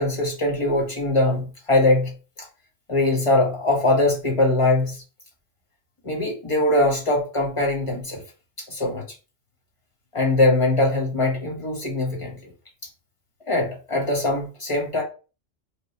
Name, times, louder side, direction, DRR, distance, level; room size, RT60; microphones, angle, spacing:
voice 1, 0.0-2.1 2.4-2.5 2.9-5.0 6.0-8.2 8.7-9.0 10.1-12.4 13.5-15.0, left 2 dB, 30° left, 0 dB, 0.9 m, -22 dB
3.1 x 2.2 x 4.0 m, 0.34 s
omnidirectional pair, 1.3 m